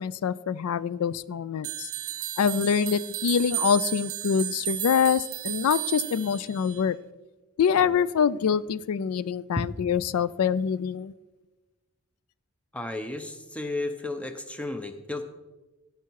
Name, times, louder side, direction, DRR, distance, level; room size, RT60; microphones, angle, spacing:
voice 1, 0.0-1.9 2.4-7.0 7.6-11.1, left 7 dB, 85° left, 18 dB, 0.4 m, -25 dB
sound 1, 1.6-6.9, right 14 dB, 75° right, 0.6 m, -33 dB
voice 2, 12.7-15.2, left 2 dB, 5° left, 8 dB, 0.7 m, -34 dB
16.5 x 5.7 x 4.7 m, 1.2 s
head